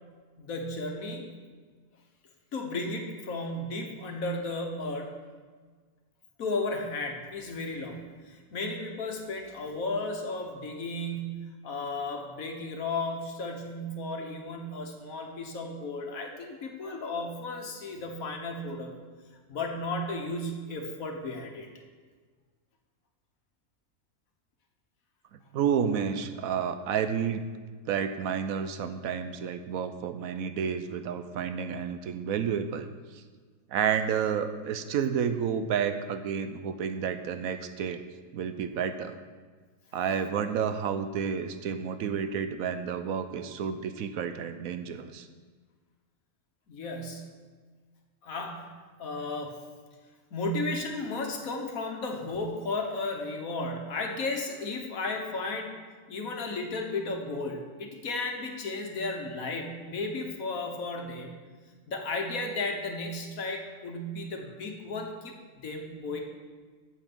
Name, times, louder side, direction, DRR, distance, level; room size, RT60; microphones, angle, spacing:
voice 1, 0.4-1.3 2.5-5.2 6.4-18.9 19.5-21.7 46.7-47.3 48.2-48.7 49.0-49.6 50.3-55.8 56.1-61.4 61.9-66.2, left 2 dB, 70° left, 2 dB, 1.7 m, -34 dB
voice 2, 25.5-27.5 27.9-32.9 33.7-38.0 38.3-39.1 39.9-45.3, right 7 dB, 75° right, 9 dB, 1.1 m, -30 dB
8.8 x 7.2 x 6.1 m, 1.5 s
omnidirectional pair, 1.5 m